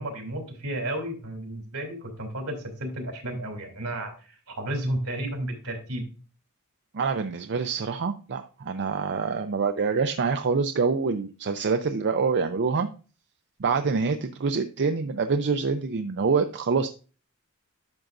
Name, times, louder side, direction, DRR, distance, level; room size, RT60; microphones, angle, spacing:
voice 1, 0.0-6.0, right 1 dB, 75° right, 3 dB, 3.0 m, -32 dB
voice 2, 6.9-12.9 13.6-16.9, right 5 dB, 50° right, 7 dB, 0.5 m, -26 dB
10.5 x 6.5 x 2.5 m, 0.35 s
head